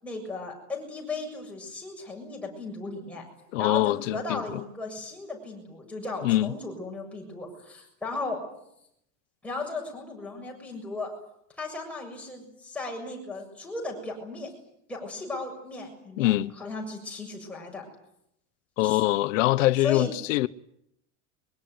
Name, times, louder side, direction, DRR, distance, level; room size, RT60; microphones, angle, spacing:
voice 1, 0.0-3.2 3.6-8.4 9.4-11.1 11.6-14.5 14.9-17.8 18.8-19.0 19.8-20.1, left 3 dB, 5° left, 7.0 m, -36 dB
voice 2, 3.5-4.6 6.2-6.5 16.2-16.5 18.8-20.5, left 16 dB, 90° left, 1.1 m, -24 dB
23.5 x 23.5 x 9.7 m
cardioid pair, 175°, 37 cm